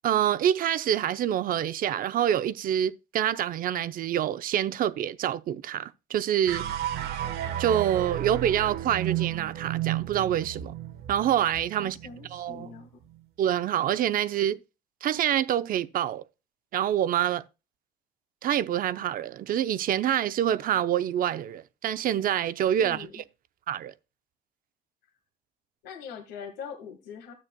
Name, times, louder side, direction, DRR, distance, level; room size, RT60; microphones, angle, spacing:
voice 1, 0.0-6.6 7.6-10.7 11.1-12.0 12.3-12.7 13.4-14.6 15.0-16.2 16.7-17.4 18.4-23.2 23.7-23.9, right 10 dB, 55° right, 0.6 m, -26 dB
sound 1, 6.5-12.8, right 12 dB, 80° right, 1.1 m, -33 dB
voice 2, 11.8-12.9 22.8-23.1 25.8-27.3, left 6 dB, 85° left, 1.7 m, -42 dB
13.0 x 8.5 x 2.2 m
cardioid pair, 110°, 17 cm